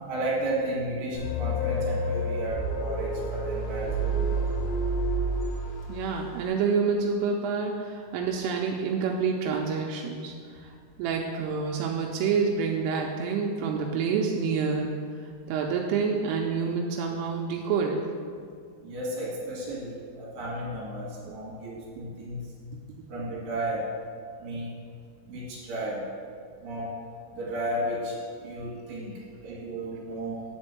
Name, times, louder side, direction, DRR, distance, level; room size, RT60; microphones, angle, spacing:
voice 1, 0.1-4.4 18.8-22.5 23.1-24.0 24.4-24.8 25.3-26.1 26.6-27.0 27.3-30.4, right 1 dB, 65° right, -5 dB, 3.4 m, -33 dB
sound 1, 1.1-6.1, right 1 dB, 85° left, 5.3 m, -29 dB
voice 2, 5.9-10.3 10.6-10.7 11.0-14.9 15.5-18.0 21.3-21.4 22.0-22.1, right 5 dB, 85° right, 0 dB, 3.1 m, -28 dB
10.5 x 4.4 x 7.6 m, 2.1 s
omnidirectional pair, 5.8 m